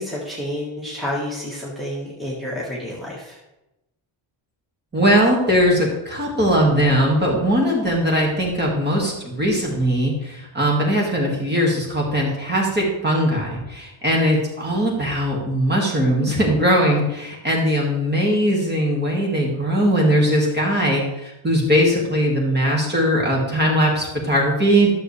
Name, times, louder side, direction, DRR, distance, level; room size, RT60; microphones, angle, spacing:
voice 1, 0.0-3.4, left 1 dB, ahead, -5 dB, 1.5 m, -29 dB
voice 2, 4.9-24.9, equal, 20° right, -2 dB, 1.9 m, -20 dB
12.5 x 7.0 x 3.3 m, 0.94 s
wide cardioid pair, 180°, 50 cm